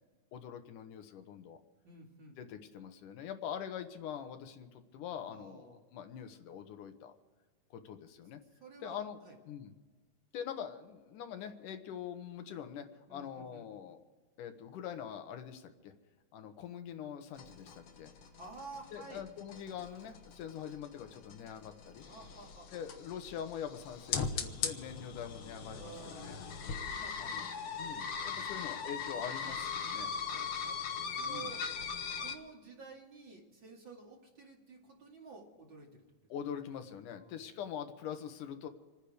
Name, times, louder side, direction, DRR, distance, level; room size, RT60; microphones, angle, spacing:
voice 1, 0.3-1.6 2.4-7.1 7.7-8.4 8.8-9.2 9.5-9.7 10.3-14.0 14.4-15.9 16.3-18.1 18.9-22.0 22.7-26.4 27.2-27.4 27.8-30.1 31.3-31.5 36.3-38.7, left 8 dB, 80° left, 7 dB, 2.7 m, -44 dB
voice 2, 1.8-2.4 5.3-5.8 8.6-9.4 13.1-13.7 18.4-19.3 22.1-22.8 25.8-27.4 30.2-30.8 31.1-31.6 32.2-36.0 37.1-37.4, right 3 dB, 40° right, -1 dB, 2.8 m, -52 dB
sound 1, 17.4-32.3, left 6 dB, 55° left, 1.7 m, -40 dB
27.5 x 10.0 x 5.0 m, 1.3 s
omnidirectional pair, 3.6 m